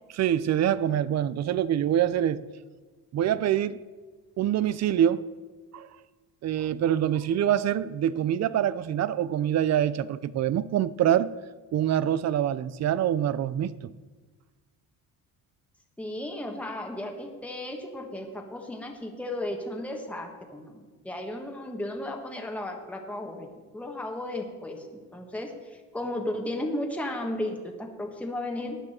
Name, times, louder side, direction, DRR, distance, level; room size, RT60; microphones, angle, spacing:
voice 1, 0.1-2.4 3.1-3.8 4.4-5.3 5.7-5.9 6.4-11.3 11.7-13.9, right 10 dB, 50° right, 0.6 m, -25 dB
voice 2, 16.0-28.8, left 1 dB, 5° left, 1.4 m, -35 dB
15.5 x 9.8 x 4.4 m
cardioid pair, 125°, 34 cm